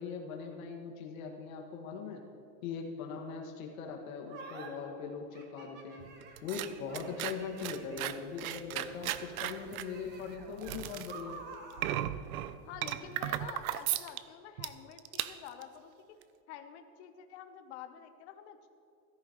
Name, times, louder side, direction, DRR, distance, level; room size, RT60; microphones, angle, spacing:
voice 1, 0.0-2.2 2.6-6.1 6.4-11.4, left 5 dB, 75° left, 2 dB, 1.9 m, -41 dB
sound 1, 4.3-4.7 5.3-8.1 8.8-12.0, right 4 dB, 25° right, 1.2 m, -50 dB
sound 2, 6.0-14.2 14.6-14.7 15.0-15.6 16.2-16.3, right 13 dB, 80° right, 0.7 m, -37 dB
voice 2, 12.6-16.0 16.5-18.7, left 9 dB, 50° left, 7 dB, 0.9 m, -48 dB
15.5 x 13.5 x 3.1 m, 2.6 s
supercardioid pair, 175°, 42 cm